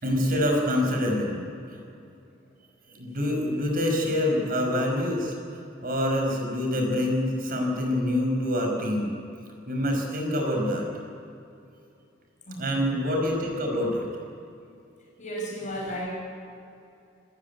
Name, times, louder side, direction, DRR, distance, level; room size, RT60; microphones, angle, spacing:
voice 1, 0.0-1.5 2.9-5.3 5.8-9.2 9.7-10.9 12.6-14.1, left 1 dB, 50° right, 3 dB, 5.2 m, -26 dB
voice 2, 12.5-12.8 15.2-16.1, equal, 40° left, -2 dB, 6.3 m, -34 dB
27.0 x 15.0 x 9.6 m, 2.5 s
head